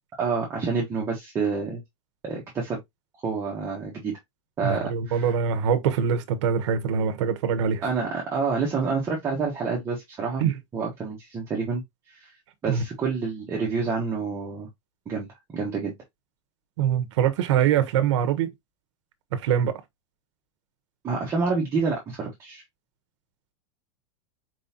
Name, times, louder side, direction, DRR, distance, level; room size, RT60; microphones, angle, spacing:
voice 1, 0.2-1.8 2.2-2.8 3.2-4.2 4.6-5.3 7.8-10.4 10.7-11.8 12.1-12.3 12.6-14.7 15.1-15.3 15.5-15.9 21.0-22.6, right 4 dB, 15° right, 1.2 m, -28 dB
voice 2, 4.6-7.9 10.4-10.5 12.7-12.8 16.8-18.5 19.3-19.8, right 8 dB, 65° right, 1.0 m, -23 dB
4.7 x 3.9 x 2.8 m
supercardioid pair, 170°, 16 cm